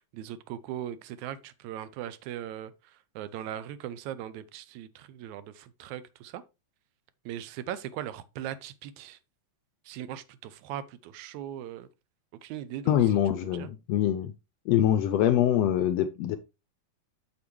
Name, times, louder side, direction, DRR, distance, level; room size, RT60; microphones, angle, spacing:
voice 1, 0.0-6.4 7.3-9.2 9.9-11.9 12.4-13.0 13.4-13.7, right 11 dB, 85° right, 2.0 m, -39 dB
voice 2, 12.9-14.3 14.7-16.4, left 11 dB, 80° left, 1.5 m, -24 dB
7.3 x 6.9 x 3.1 m
omnidirectional pair, 3.4 m